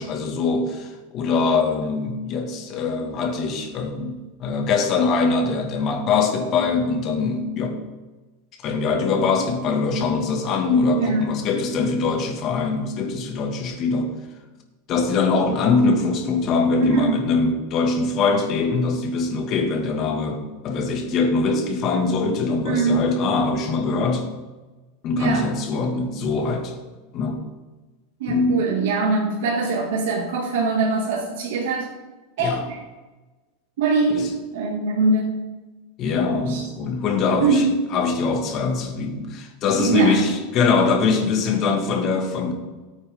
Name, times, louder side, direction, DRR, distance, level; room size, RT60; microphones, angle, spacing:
voice 1, 0.0-7.8 8.6-14.1 14.9-24.3 25.0-26.7 27.1-27.4 28.3-28.7 32.4-32.6 34.1-34.3 36.0-37.6 37.9-42.5, left 4 dB, 35° left, 3 dB, 2.2 m, -22 dB
voice 2, 11.0-11.3 16.8-17.1 22.6-23.0 25.1-25.5 28.2-31.9 32.4-32.8 33.8-34.2 34.5-35.4 36.0-36.1 36.5-36.7 37.4-37.7 39.8-40.3, right 3 dB, 75° right, -3 dB, 2.6 m, -22 dB
18.0 x 8.9 x 3.9 m, 1.2 s
supercardioid pair, 145°, 0 cm